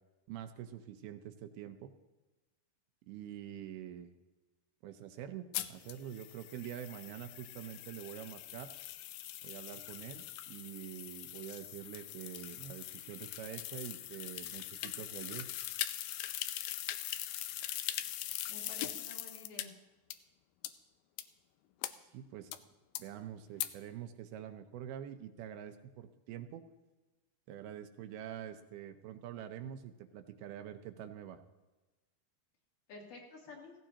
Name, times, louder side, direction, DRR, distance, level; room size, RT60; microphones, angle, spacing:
voice 1, 0.3-1.9 3.1-4.1 4.8-8.7 9.4-15.5 22.1-22.5 23.0-26.6 27.5-31.4, right 10 dB, 80° right, 7 dB, 2.7 m, -46 dB
sound 1, 5.5-19.6 20.1-20.2 20.6-20.7 21.2-21.3 21.8-21.9 22.5-22.6 22.9-23.0 23.6-23.7, left 13 dB, 85° left, 2.0 m, -41 dB
voice 2, 18.5-19.7 32.9-33.7, left 2 dB, 60° left, -3 dB, 4.3 m, -51 dB
16.5 x 16.5 x 2.9 m, 1.1 s
omnidirectional pair, 4.5 m